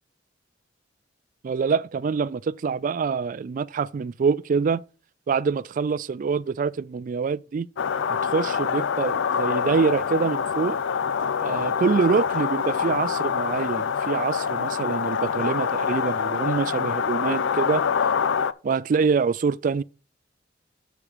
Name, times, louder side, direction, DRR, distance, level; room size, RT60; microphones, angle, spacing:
voice 1, 1.4-4.8 5.3-7.7 8.2-10.8 11.4-17.8 18.6-19.8, right 5 dB, 45° right, 0.3 m, -25 dB
sound 1, 7.8-18.5, left 6 dB, 75° left, 0.4 m, -25 dB
7.3 x 4.9 x 6.6 m
head